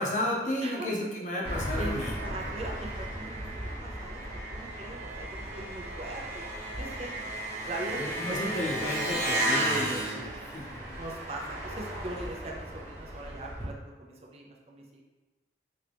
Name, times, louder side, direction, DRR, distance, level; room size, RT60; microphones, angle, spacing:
voice 1, 0.0-2.1 8.0-11.0, left 1 dB, 40° left, -2 dB, 0.7 m, -33 dB
Engine, 1.4-13.6, right 1 dB, 15° right, 1.0 m, -34 dB
voice 2, 1.8-4.2 4.5-6.5 6.8-7.3 7.7-8.0 8.3-8.5 8.8-8.9 9.5-10.0 11.0-15.0, right 2 dB, 35° right, -1 dB, 0.4 m, -40 dB
3.8 x 2.8 x 3.3 m, 1.2 s
head